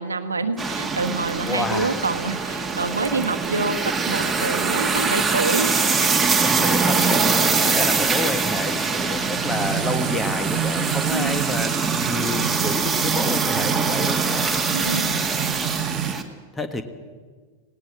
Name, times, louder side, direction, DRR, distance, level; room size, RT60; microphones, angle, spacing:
voice 1, 0.0-5.9 11.1-11.4 14.7-15.1, right 3 dB, 75° right, 8 dB, 1.3 m, -27 dB
sound 1, 0.6-16.2, right 4 dB, 10° right, 2.0 m, -23 dB
voice 2, 1.5-2.0 6.4-14.6 16.5-16.8, left 2 dB, 10° left, 9 dB, 1.7 m, -29 dB
sound 2, 9.5-16.1, right 13 dB, 50° right, 0.6 m, -29 dB
19.0 x 18.5 x 7.7 m, 1.5 s
figure-of-eight pair, 90°, 0 cm